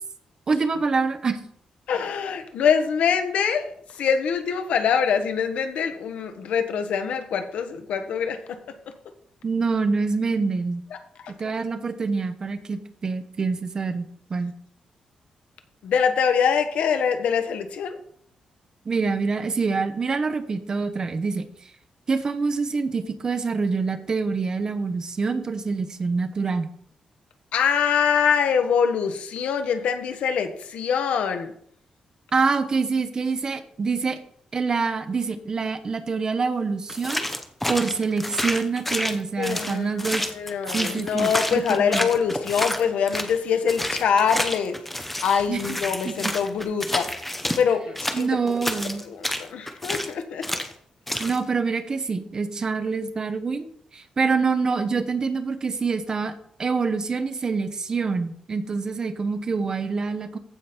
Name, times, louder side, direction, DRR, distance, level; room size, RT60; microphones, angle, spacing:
voice 1, 0.5-1.4 9.4-10.8 11.4-14.5 18.8-21.5 22.1-26.7 32.3-34.2 34.5-37.2 37.7-40.2 40.7-42.1 45.5-45.6 46.0-46.3 48.1-49.0 51.2-53.7 53.9-56.3 56.6-60.4, right 4 dB, 35° right, 9 dB, 0.9 m, -26 dB
voice 2, 1.9-8.9 11.2-11.3 15.8-18.0 27.5-31.5 39.4-50.6, left 7 dB, 90° left, 7 dB, 1.2 m, -24 dB
sound 1, 36.9-43.4 43.7-47.6 48.0-50.1 50.4-50.7 51.1-51.4, left 1 dB, 10° left, 0.9 m, -29 dB
15.0 x 5.2 x 4.4 m, 0.65 s
wide cardioid pair, 145°, 2 cm